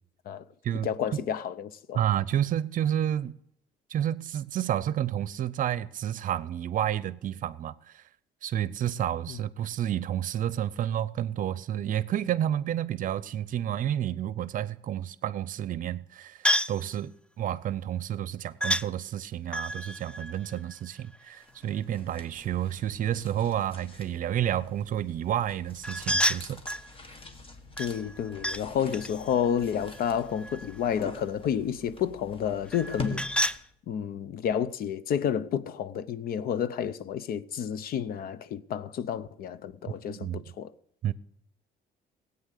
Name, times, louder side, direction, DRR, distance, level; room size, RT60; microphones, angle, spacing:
voice 1, 0.8-2.0 9.3-9.4 27.8-33.4 33.9-40.7, left 8 dB, 60° left, 0.7 m, -30 dB
voice 2, 1.9-3.4 3.9-8.0 8.4-26.6 39.9-40.4 41.0-41.1, right 11 dB, 55° right, 0.6 m, -30 dB
sound 1, 16.4-16.8 18.6-18.9 19.5-21.3 25.8-26.9 27.8-28.6 28.9-30.8 32.7-33.6, equal, 5° left, 0.5 m, -30 dB
sound 2, 21.4-33.8, left 3 dB, 30° left, 1.5 m, -44 dB
17.0 x 8.7 x 6.6 m
cardioid pair, 110°, 17 cm